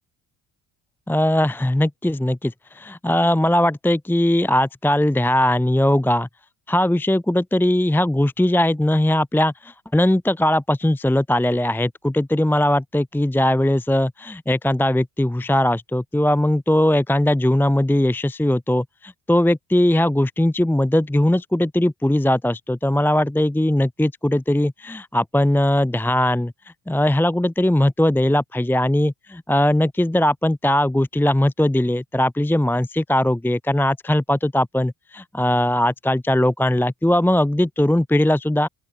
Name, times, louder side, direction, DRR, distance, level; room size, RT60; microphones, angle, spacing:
voice 1, 1.1-6.3 6.7-26.5 26.9-38.7, left 1 dB, 5° left, 1.0 m, -20 dB
open air
hypercardioid pair, 50°, 50 cm